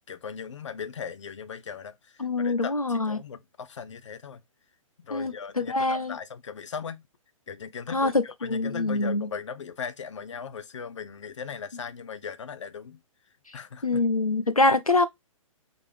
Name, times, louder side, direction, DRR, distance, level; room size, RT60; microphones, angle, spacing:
voice 1, 0.1-4.4 5.0-7.0 7.5-13.0 13.5-14.0, left 6 dB, 60° left, 0.7 m, -38 dB
voice 2, 2.2-3.2 5.1-6.2 7.9-9.3 13.8-15.1, left 2 dB, 90° left, 0.8 m, -25 dB
4.0 x 3.2 x 3.4 m
figure-of-eight pair, 125°, 18 cm